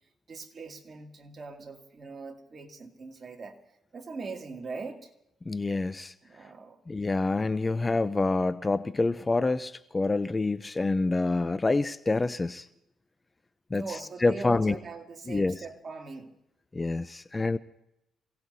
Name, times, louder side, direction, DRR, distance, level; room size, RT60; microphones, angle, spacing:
voice 1, 0.3-3.6 3.9-5.1 6.2-6.8 13.7-16.4, right 4 dB, 40° right, 2 dB, 2.4 m, -41 dB
voice 2, 5.5-6.1 6.9-12.7 13.7-13.8 14.2-14.7 15.3-15.6 16.7-17.6, left 3 dB, 20° left, 13 dB, 0.6 m, -27 dB
27.0 x 17.5 x 2.7 m, 0.84 s
cardioid pair, 90°, 0 cm